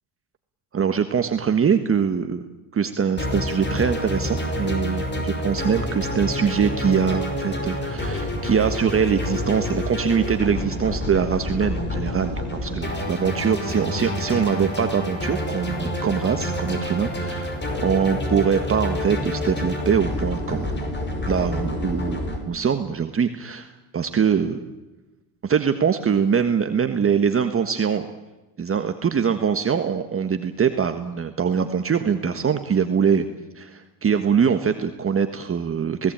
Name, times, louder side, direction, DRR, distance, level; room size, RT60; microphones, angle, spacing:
voice 1, 0.7-2.4 2.7-20.8 21.3-24.6 25.4-28.1 28.6-33.3 33.6-36.1, right 7 dB, 30° right, 7 dB, 1.5 m, -23 dB
sound 1, 3.2-22.4, left 1 dB, 25° left, 5.5 m, -28 dB
27.5 x 18.0 x 8.9 m, 1.1 s
supercardioid pair, 100°, 46 cm